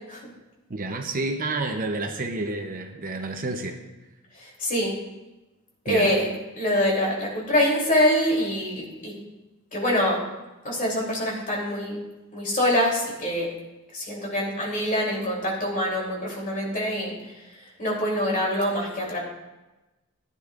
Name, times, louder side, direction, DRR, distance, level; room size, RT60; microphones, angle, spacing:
voice 1, 0.7-3.8 5.9-6.2, right 2 dB, 40° right, 5 dB, 0.8 m, -29 dB
voice 2, 4.4-4.9 5.8-6.3 6.6-9.1 9.7-10.2 10.6-12.0 12.3-13.5 13.9-17.1 17.8-19.2, left 1 dB, 40° left, -3 dB, 3.2 m, -25 dB
16.0 x 9.8 x 2.5 m, 1.1 s
head